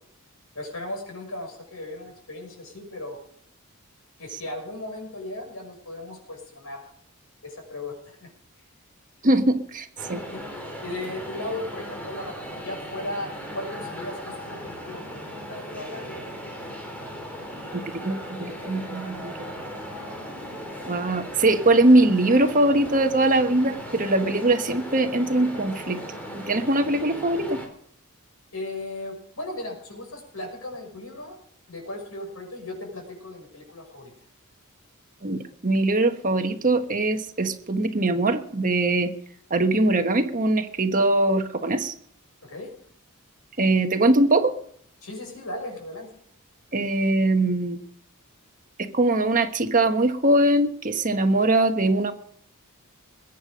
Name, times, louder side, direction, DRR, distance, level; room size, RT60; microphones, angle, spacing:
voice 1, 0.5-3.2 4.2-6.8 7.4-8.3 10.3-10.4 10.8-16.3 28.5-31.4 31.7-34.1 42.4-42.7 45.0-46.1, left 1 dB, 70° left, 2 dB, 6.2 m, -36 dB
voice 2, 9.2-10.2 17.7-19.5 20.9-26.0 26.3-27.6 35.2-39.1 39.5-41.9 43.6-44.6 46.7-47.8 48.8-52.1, right 2 dB, 40° right, 7 dB, 1.3 m, -22 dB
sound 1, 10.0-27.7, equal, 5° left, 3.7 m, -37 dB
21.5 x 9.4 x 5.1 m, 0.63 s
head